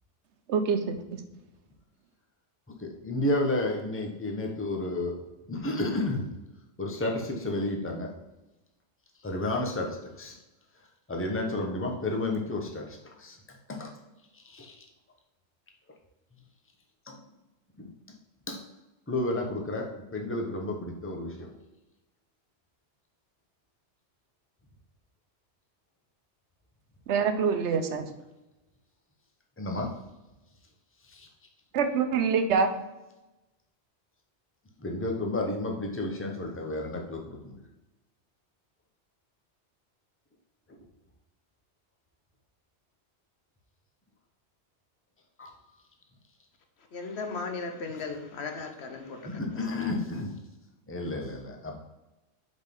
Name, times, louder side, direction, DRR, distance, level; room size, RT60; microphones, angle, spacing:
voice 1, 0.5-1.2 27.1-28.1 31.7-32.7, right 6 dB, 75° right, 8 dB, 1.0 m, -25 dB
voice 2, 2.8-5.1 5.5-6.3 6.8-8.1 9.2-10.4 11.1-13.9 14.3-14.9 17.1-17.2 17.8-17.9 18.5-18.6 19.1-21.5 29.6-29.9 31.0-31.3 34.8-37.5 40.7-40.8 45.4-45.5 49.2-50.4 50.9-51.8, left 2 dB, 10° left, 1 dB, 0.8 m, -31 dB
voice 3, 46.9-49.2, left 4 dB, 70° left, 5 dB, 1.0 m, -36 dB
5.2 x 4.1 x 5.3 m, 1.0 s
omnidirectional pair, 1.2 m